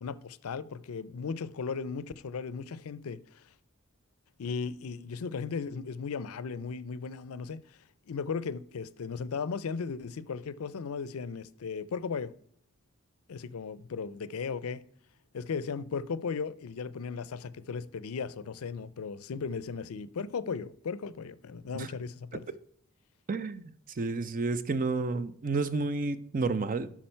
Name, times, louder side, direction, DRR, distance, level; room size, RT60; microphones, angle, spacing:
voice 1, 0.0-3.4 4.4-7.6 8.1-12.3 13.3-14.8 15.3-22.4, left 5 dB, 70° left, 0.5 m, -36 dB
voice 2, 23.3-26.9, right 3 dB, 40° right, 0.5 m, -31 dB
8.7 x 6.0 x 4.4 m
head